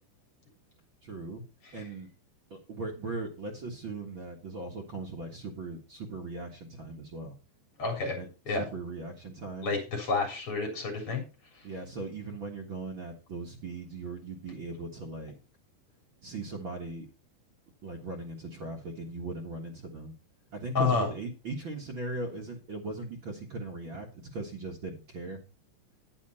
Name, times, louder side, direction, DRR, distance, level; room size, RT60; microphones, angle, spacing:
voice 1, 1.0-1.4 1.7-2.1 2.5-7.4 8.2-9.7 11.6-15.3 16.2-17.1 17.8-20.1 20.5-25.4, right 3 dB, 75° right, 1 dB, 1.1 m, -39 dB
voice 2, 7.8-8.2 8.5-8.6 9.6-11.2 20.7-21.1, left 4 dB, 35° left, 1 dB, 4.1 m, -29 dB
10.5 x 8.8 x 4.2 m, 0.31 s
omnidirectional pair, 5.1 m